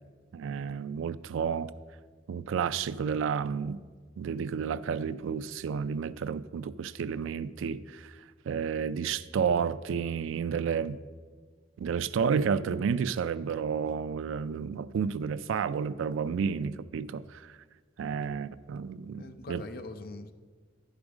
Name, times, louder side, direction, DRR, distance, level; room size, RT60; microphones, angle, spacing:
voice 1, 0.3-1.7 2.3-3.8 4.2-8.2 8.5-11.0 11.8-17.6 18.0-19.6, right 6 dB, 80° right, 0.3 m, -31 dB
voice 2, 19.1-20.3, left 2 dB, 50° left, 0.5 m, -43 dB
10.5 x 5.1 x 6.1 m
head